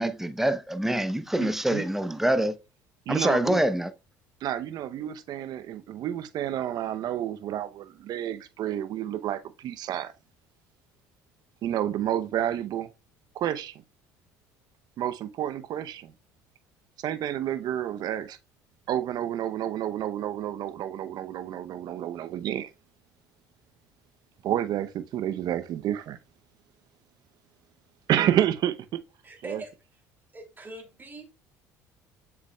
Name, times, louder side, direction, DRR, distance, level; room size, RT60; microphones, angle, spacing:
voice 1, 0.0-2.5 3.1-3.9, right 1 dB, 5° right, 0.8 m, -25 dB
voice 2, 1.4-1.8 3.1-3.6 4.4-10.1 11.6-12.9 13.3-13.8 15.0-16.1 17.0-18.4 18.9-22.7 24.4-26.2 28.1-29.0 29.5-29.6, right 11 dB, 60° right, 0.8 m, -30 dB
voice 3, 29.2-29.7 30.3-31.3, right 2 dB, 25° right, 2.7 m, -42 dB
7.5 x 6.0 x 2.3 m
hypercardioid pair, 65°, 8 cm